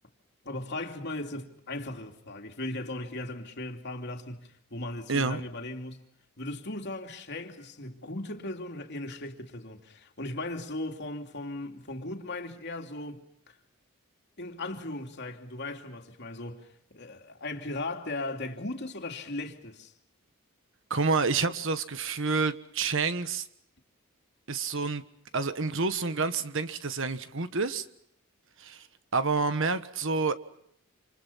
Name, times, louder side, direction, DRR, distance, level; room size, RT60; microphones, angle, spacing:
voice 1, 0.4-6.0 6.4-13.5 14.4-19.9, left 2 dB, 50° left, 2.8 m, -37 dB
voice 2, 5.1-5.4 20.9-23.5 24.5-25.0 25.3-27.8 28.6-28.9 29.1-30.3, right 4 dB, 60° right, 1.4 m, -28 dB
28.5 x 27.5 x 5.8 m
head